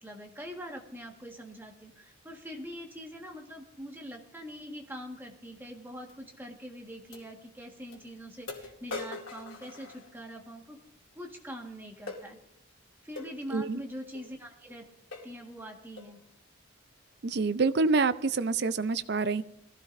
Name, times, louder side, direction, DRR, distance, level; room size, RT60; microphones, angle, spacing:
voice 1, 0.0-10.8 11.1-12.4 13.0-14.9 15.2-16.2, equal, 10° right, 1 dB, 1.5 m, -43 dB
sound 1, 6.1-6.2 7.1-7.2 7.9-8.0 8.5-10.4 12.1-12.3 13.2-13.4 14.1-14.3 14.7-14.8 15.1-15.4 16.0-16.2, left 3 dB, 85° left, 2.5 m, -42 dB
voice 2, 13.5-13.8 17.2-19.4, right 4 dB, 55° right, 14 dB, 0.5 m, -27 dB
21.5 x 15.0 x 2.6 m, 0.74 s
head